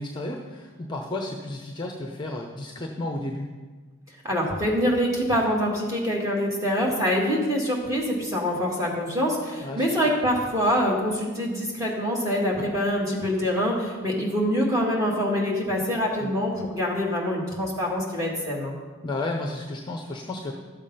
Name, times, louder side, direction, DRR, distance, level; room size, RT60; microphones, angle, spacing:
voice 1, 0.0-3.5 9.6-10.0 16.2-16.3 19.0-20.6, left 2 dB, 20° left, 2 dB, 0.7 m, -32 dB
voice 2, 4.2-18.8, equal, 15° right, -3 dB, 2.1 m, -25 dB
12.0 x 7.1 x 5.6 m, 1.4 s
head